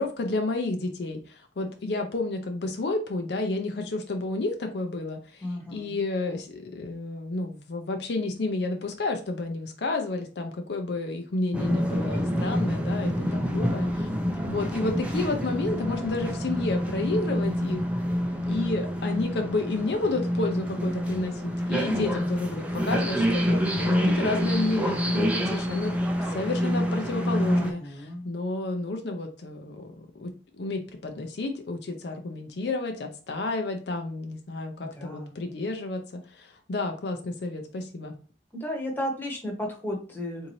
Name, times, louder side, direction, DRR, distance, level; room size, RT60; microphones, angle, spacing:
voice 1, 0.0-5.5 5.7-14.1 14.5-17.9 18.5-27.8 28.2-38.1, left 2 dB, 65° left, 4 dB, 0.5 m, -31 dB
voice 2, 5.4-6.0 13.1-13.6 27.5-28.3 34.8-35.4 38.5-40.5, left 1 dB, 10° left, -1 dB, 0.9 m, -34 dB
sound 1, 11.5-27.7, equal, 10° right, 0.5 m, -27 dB
3.8 x 2.7 x 3.0 m, 0.37 s
head